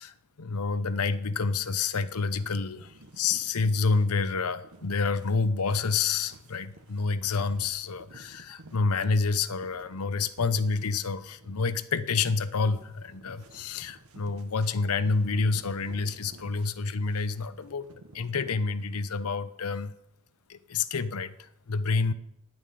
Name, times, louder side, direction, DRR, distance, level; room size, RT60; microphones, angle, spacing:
voice 1, 0.0-17.9 18.1-19.9 20.5-22.1, left 4 dB, 90° left, 14 dB, 0.7 m, -28 dB
sound 1, 2.1-19.2, right 2 dB, 85° right, 1.3 m, -54 dB
10.0 x 9.0 x 7.6 m, 0.79 s
head